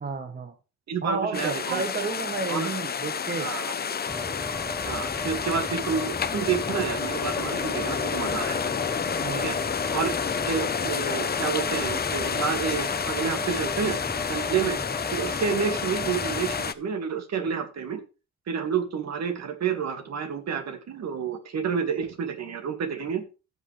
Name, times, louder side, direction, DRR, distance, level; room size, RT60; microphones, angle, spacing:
voice 1, 0.0-0.5 1.0-3.5 9.2-9.6, right 4 dB, 30° right, 7 dB, 1.3 m, -31 dB
voice 2, 0.9-1.8 2.5-2.8 3.4-3.7 4.8-8.7 9.3-9.6 9.9-10.1 10.5-14.0 14.3-14.8 15.1-18.0 18.5-23.2, right 6 dB, 60° right, 7 dB, 2.1 m, -29 dB
sound 1, 1.3-16.7, left 6 dB, 30° left, 0.7 m, -30 dB
sound 2, 3.0-13.0, left 9 dB, 85° left, 1.6 m, -48 dB
sound 3, 4.1-16.7, left 1 dB, 5° left, 0.9 m, -37 dB
15.5 x 5.8 x 3.3 m, 0.31 s
cardioid pair, 90°, 30 cm